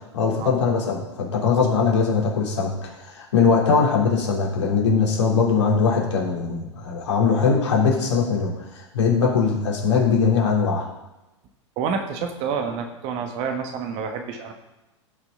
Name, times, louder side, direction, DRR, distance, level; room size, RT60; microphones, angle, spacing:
voice 1, 0.1-10.8, left 5 dB, 70° left, -2 dB, 3.5 m, -21 dB
voice 2, 11.8-14.5, right 6 dB, 40° right, 5 dB, 1.5 m, -28 dB
16.0 x 6.2 x 3.9 m, 1.0 s
figure-of-eight pair, 100°, 16 cm